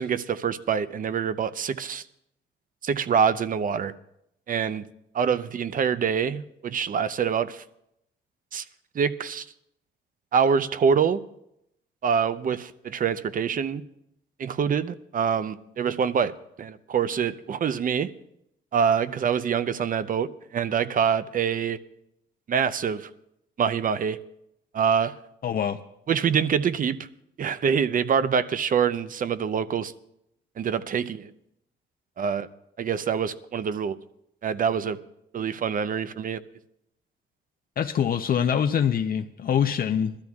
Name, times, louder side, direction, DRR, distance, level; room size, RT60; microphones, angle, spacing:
voice 1, 0.0-2.0 2.8-3.9 4.5-4.8 5.1-7.6 8.5-8.6 8.9-9.5 10.3-11.2 12.0-13.8 14.4-18.1 18.7-21.8 22.5-23.1 23.6-24.2 24.7-25.1 26.1-27.0 27.4-29.9 30.6-31.3 32.2-32.5 32.8-34.0 34.4-35.0 35.3-36.4, right 7 dB, 45° right, 14 dB, 0.6 m, -25 dB
voice 2, 25.4-25.8 37.8-40.2, left 8 dB, 50° left, 6 dB, 0.6 m, -24 dB
21.5 x 13.0 x 2.3 m, 0.79 s
cardioid pair, 90°, 20 cm